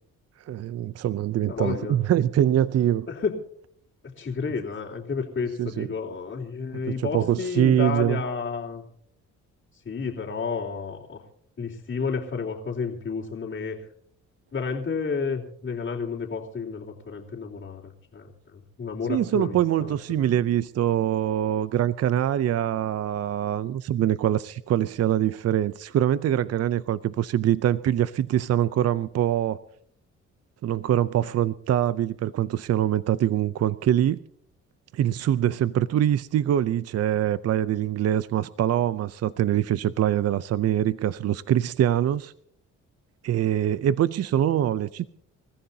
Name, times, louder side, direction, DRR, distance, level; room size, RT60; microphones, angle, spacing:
voice 1, 0.5-3.1 5.6-5.9 6.9-8.2 19.1-29.6 30.6-34.2 34.9-42.3 43.2-45.1, right 11 dB, 55° right, 16 dB, 0.6 m, -24 dB
voice 2, 1.5-2.0 3.1-3.3 4.2-8.8 9.8-11.2 11.6-13.8 14.5-18.3 18.5-20.3, left 5 dB, 40° left, -7 dB, 3.4 m, -31 dB
28.0 x 14.5 x 2.8 m, 0.66 s
cardioid pair, 90°, 30 cm